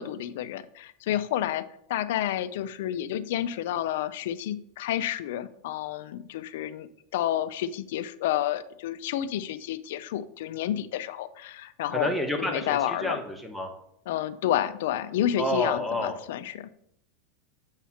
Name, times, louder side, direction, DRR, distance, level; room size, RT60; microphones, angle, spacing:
voice 1, 0.0-12.1 12.4-13.2 14.1-16.7, left 11 dB, 70° left, 14 dB, 0.4 m, -30 dB
voice 2, 11.9-13.7 15.4-16.2, left 1 dB, ahead, 1 dB, 0.9 m, -29 dB
7.3 x 2.9 x 5.7 m, 0.74 s
supercardioid pair, 145°, 0 cm